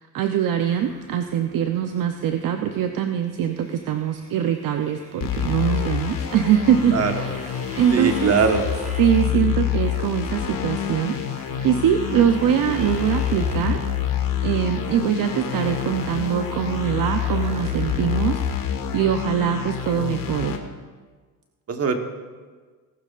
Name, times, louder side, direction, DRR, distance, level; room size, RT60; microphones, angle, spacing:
voice 1, 0.1-7.5 7.8-8.4 9.0-14.1 14.4-20.6, right 9 dB, 55° right, 6 dB, 0.8 m, -23 dB
sound 1, 0.6-18.6, right 1 dB, 15° right, 1.5 m, -43 dB
sound 2, 5.2-20.6, left 9 dB, 55° left, 1.6 m, -27 dB
voice 2, 6.9-7.3 7.9-8.6 21.7-22.0, right 5 dB, 40° right, 5 dB, 1.4 m, -21 dB
18.5 x 12.0 x 2.5 m, 1.5 s
cardioid pair, 105°, 39 cm